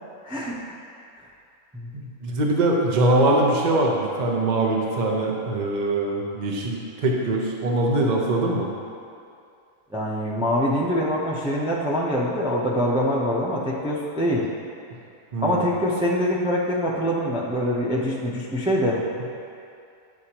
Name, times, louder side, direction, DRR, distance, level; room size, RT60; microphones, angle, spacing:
voice 1, 0.2-0.6 1.7-1.9 9.9-14.5 15.4-19.0, equal, 10° right, -4 dB, 0.3 m, -24 dB
voice 2, 1.9-8.7 15.3-15.6, right 2 dB, 35° right, -1 dB, 0.8 m, -22 dB
9.7 x 6.3 x 2.9 m, 2.5 s
omnidirectional pair, 1.6 m